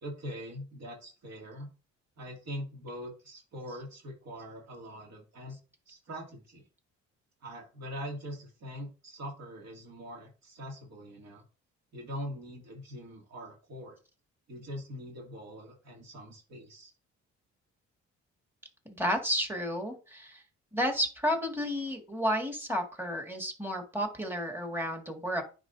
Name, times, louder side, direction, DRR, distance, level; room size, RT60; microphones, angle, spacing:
voice 1, 0.0-1.7 2.2-5.6 5.9-6.6 7.4-11.4 11.9-14.0 14.5-16.9, equal, 60° right, -1 dB, 2.4 m, -42 dB
voice 2, 18.9-20.4 20.7-25.4, equal, 5° right, 2 dB, 1.8 m, -32 dB
9.8 x 3.8 x 2.6 m, 0.34 s
cardioid pair, 90°, 30 cm